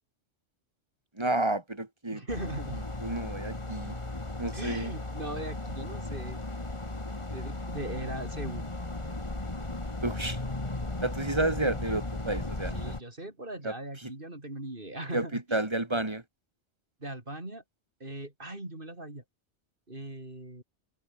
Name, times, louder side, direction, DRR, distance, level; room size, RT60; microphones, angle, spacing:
voice 1, 1.2-2.2 3.0-4.0 4.4-4.9 10.0-10.4 11.0-12.8 13.6-13.7 15.1-15.3 15.5-16.2, right 2 dB, 25° right, 2.8 m, -30 dB
voice 2, 2.1-2.8 4.5-6.4 7.3-8.7 12.7-15.7 17.0-17.6 18.0-19.2 19.9-20.6, right 1 dB, 50° right, 4.9 m, -39 dB
sound 1, 2.3-13.0, left 2 dB, 25° left, 2.1 m, -36 dB
omnidirectional pair, 1.2 m